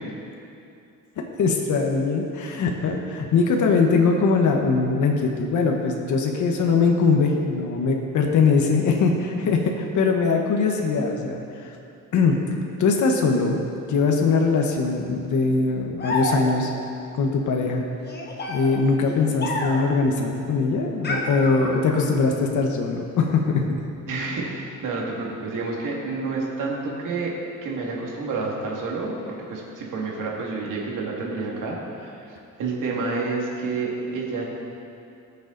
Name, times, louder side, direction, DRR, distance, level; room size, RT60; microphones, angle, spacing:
voice 1, 1.2-11.8 12.1-12.4 12.8-13.6 13.9-16.7 17.1-17.8 18.5-23.6, left 4 dB, 65° left, 2 dB, 1.2 m, -21 dB
sound 1, 16.0-16.8 18.0-20.0 21.0-22.1, left 2 dB, 30° left, 1.3 m, -29 dB
voice 2, 24.1-27.4 27.6-32.2 32.6-34.4, right 3 dB, 75° right, -2 dB, 2.3 m, -29 dB
18.5 x 7.0 x 4.0 m, 2.6 s
cardioid pair, 160°, 32 cm